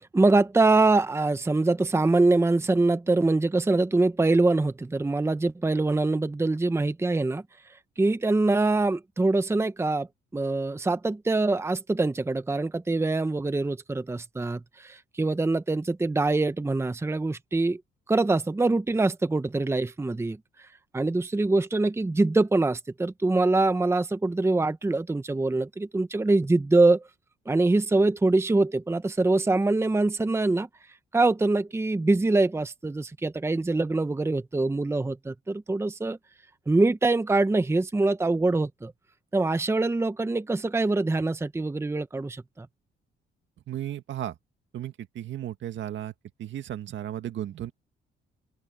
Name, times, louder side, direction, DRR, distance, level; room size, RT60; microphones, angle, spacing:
voice 1, 0.1-7.4 8.0-10.1 10.3-17.8 18.1-20.4 20.9-27.0 27.5-30.7 31.1-36.2 36.7-38.9 39.3-42.7, right 2 dB, 15° right, 0.8 m, -24 dB
voice 2, 43.7-44.4 44.7-46.1 46.4-47.7, right 11 dB, 70° right, 2.1 m, -34 dB
open air
cardioid pair, 90°, 20 cm